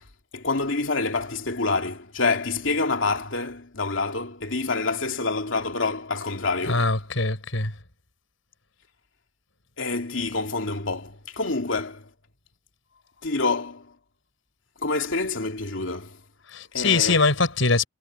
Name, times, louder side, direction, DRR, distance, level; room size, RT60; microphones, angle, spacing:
voice 1, 0.3-6.8 9.8-12.1 13.2-13.9 14.8-16.2 16.7-17.2, left 3 dB, 70° left, 3.0 m, -27 dB
voice 2, 6.7-7.7 16.5-17.9, left 3 dB, 90° left, 4.9 m, -22 dB
head